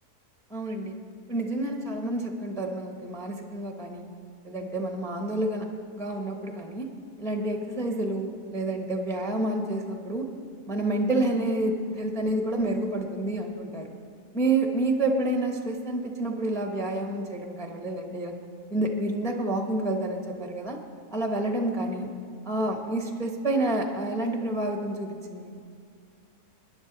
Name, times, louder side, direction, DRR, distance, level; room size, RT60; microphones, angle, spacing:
voice 1, 0.5-0.9 1.3-4.1 4.4-5.6 5.9-6.8 7.2-10.3 10.7-13.9 14.3-18.3 18.7-20.8 21.1-22.1 22.4-25.5, right 2 dB, ahead, 3 dB, 0.8 m, -29 dB
20.5 x 10.5 x 3.9 m, 2.3 s
omnidirectional pair, 1.6 m